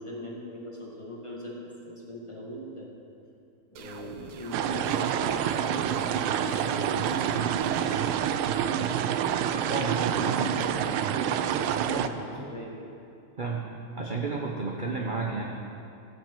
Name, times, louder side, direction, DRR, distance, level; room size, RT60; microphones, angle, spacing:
voice 1, 0.0-1.6 1.9-2.9 3.7-7.9 9.9-12.8, equal, 15° left, -3 dB, 1.5 m, -40 dB
sound 1, 3.8-8.1, right 6 dB, 65° right, 1.1 m, -45 dB
sound 2, 4.5-12.1, right 9 dB, 85° right, 1.4 m, -27 dB
voice 2, 9.7-10.6 10.9-11.0 11.9-12.5 13.4-13.7 14.0-15.4, right 4 dB, 45° right, -2 dB, 0.6 m, -32 dB
15.0 x 5.9 x 7.6 m, 2.6 s
omnidirectional pair, 2.3 m